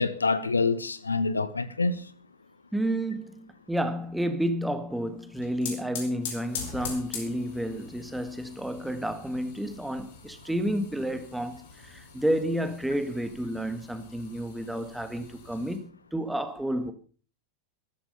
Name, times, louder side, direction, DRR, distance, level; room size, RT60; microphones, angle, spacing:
voice 1, 0.0-2.0, left 4 dB, 75° left, 1.0 m, -26 dB
voice 2, 2.7-16.9, equal, 5° right, 1.9 m, -31 dB
sound 1, 5.2-15.8, left 5 dB, 55° left, 4.9 m, -43 dB
14.0 x 13.0 x 5.6 m
figure-of-eight pair, 90°, 0 cm